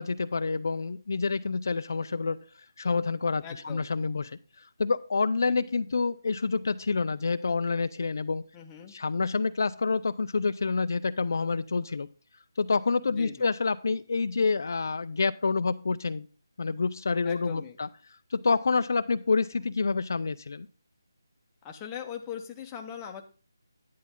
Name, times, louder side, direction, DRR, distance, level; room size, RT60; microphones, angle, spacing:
voice 1, 0.0-2.4 2.8-4.4 4.8-8.4 8.9-12.1 12.6-16.3 16.6-17.9 18.3-20.7, left 4 dB, 50° left, 11 dB, 0.4 m, -28 dB
voice 2, 3.4-3.9 5.5-5.6 8.5-9.0 13.1-13.5 17.2-17.8 21.6-23.2, left 8 dB, 10° left, 2 dB, 0.8 m, -40 dB
10.5 x 9.4 x 3.7 m, 0.37 s
figure-of-eight pair, 175°, 2 cm